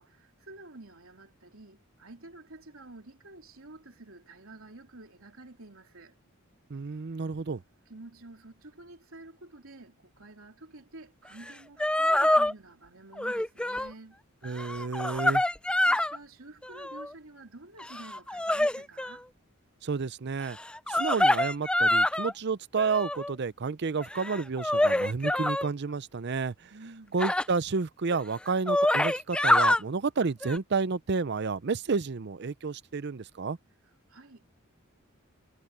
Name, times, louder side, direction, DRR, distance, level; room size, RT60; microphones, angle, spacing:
voice 1, 0.0-6.2 7.9-14.2 15.9-19.2 26.7-27.2 34.1-34.5, right 2 dB, 75° right, 3.4 m, -49 dB
voice 2, 6.7-7.6 14.4-15.4 19.8-20.6 20.9-26.7 27.1-33.6, right 4 dB, 55° right, 0.6 m, -30 dB
sound 1, 11.5-11.6 11.8-12.5 13.2-13.9 14.4-16.2 16.6-17.1 17.8-19.2 20.6-22.3 22.8-23.3 24.0-25.7 27.2-27.4 28.1-28.2 28.5-29.8 30.4-30.6, left 1 dB, 5° left, 0.3 m, -26 dB
head